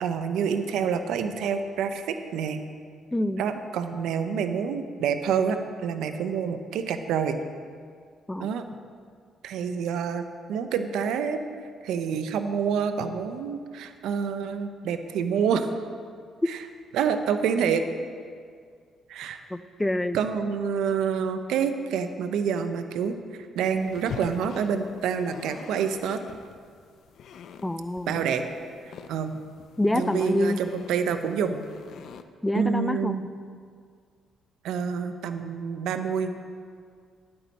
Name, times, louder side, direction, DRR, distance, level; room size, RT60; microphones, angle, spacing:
voice 1, 0.0-2.6 3.4-7.4 8.4-8.7 9.4-10.2 10.5-11.4 11.8-15.7 16.5-16.6 16.9-17.8 19.1-19.4 20.1-26.2 28.1-28.4 28.8-29.4 29.9-31.7 32.5-33.2 34.6-36.3, right 7 dB, 85° right, 8 dB, 0.6 m, -27 dB
voice 2, 3.1-3.4 8.3-8.5 19.5-20.2 27.6-28.1 29.8-30.6 32.4-33.1, left 1 dB, 10° left, 12 dB, 0.4 m, -26 dB
sound 1, 23.7-32.2, left 7 dB, 70° left, 0.4 m, -45 dB
10.0 x 8.7 x 4.1 m, 2.1 s
cardioid pair, 90°, 0 cm